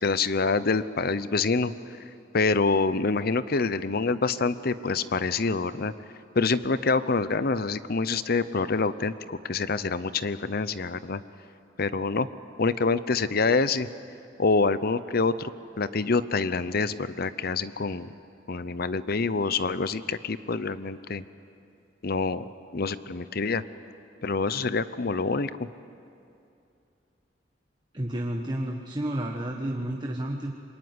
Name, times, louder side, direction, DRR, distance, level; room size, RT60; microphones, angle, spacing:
voice 1, 0.0-1.7 2.3-5.9 6.3-11.2 11.8-12.3 12.6-13.9 14.4-15.5 15.8-18.1 18.5-21.2 22.0-23.6 24.2-25.5, left 4 dB, 55° left, 15 dB, 0.8 m, -26 dB
voice 2, 27.9-30.5, right 1 dB, 25° right, 1 dB, 1.4 m, -31 dB
26.0 x 22.5 x 9.7 m, 2.6 s
head